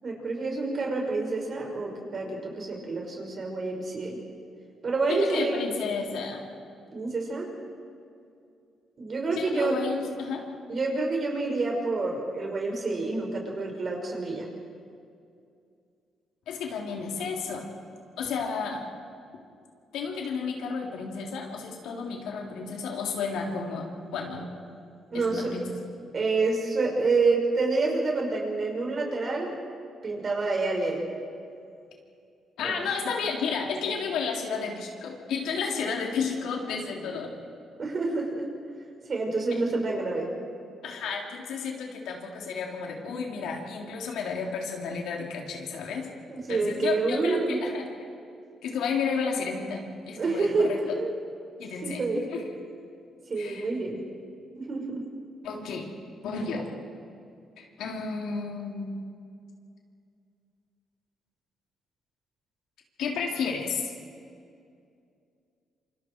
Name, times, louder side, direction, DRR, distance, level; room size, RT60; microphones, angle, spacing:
voice 1, 0.0-4.2 4.8-5.6 6.9-7.5 9.0-9.8 10.7-14.5 25.1-25.6 26.1-29.5 30.0-31.0 32.6-32.9 37.8-38.5 39.1-40.3 46.3-47.6 50.2-51.1 51.8-52.2 53.3-54.0 54.5-55.0, right 3 dB, 45° right, 0 dB, 5.6 m, -28 dB
voice 2, 5.1-6.4 9.3-10.4 16.5-17.7 18.2-18.9 19.9-24.5 25.1-25.7 32.6-37.3 39.7-39.8 40.8-46.1 46.5-47.9 48.6-50.8 51.6-52.0 52.3-52.6 53.4-53.7 55.4-55.9 56.2-56.7 57.6-59.1 63.0-63.9, left 5 dB, 85° left, 0 dB, 3.5 m, -32 dB
27.5 x 25.0 x 4.7 m, 2.4 s
cardioid pair, 90°, 0 cm